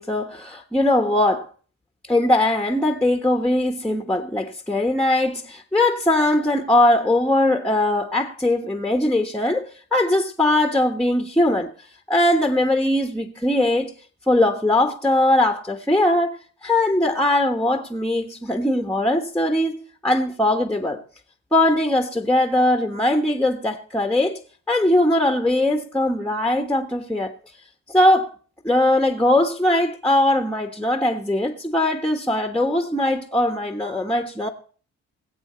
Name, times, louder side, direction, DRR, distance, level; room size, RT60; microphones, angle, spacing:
voice 1, 0.0-1.5 2.1-11.7 12.1-13.9 14.3-16.3 16.6-21.0 21.5-24.4 24.7-27.3 27.9-28.3 28.6-34.5, left 1 dB, 5° left, 1.3 m, -20 dB
21.5 x 7.9 x 4.4 m
cardioid pair, 90°, 30 cm